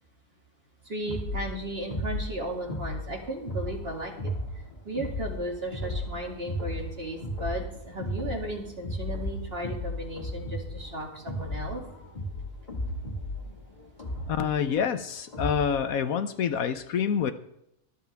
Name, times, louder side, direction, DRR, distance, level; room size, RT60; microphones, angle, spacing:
voice 1, 0.8-4.3 4.8-11.8, right 1 dB, 40° right, 1 dB, 2.8 m, -35 dB
sound 1, 1.1-15.8, left 1 dB, 30° left, 2.2 m, -35 dB
voice 2, 14.3-17.3, left 7 dB, 70° left, 11 dB, 1.2 m, -27 dB
24.0 x 8.4 x 3.5 m, 0.78 s
omnidirectional pair, 1.6 m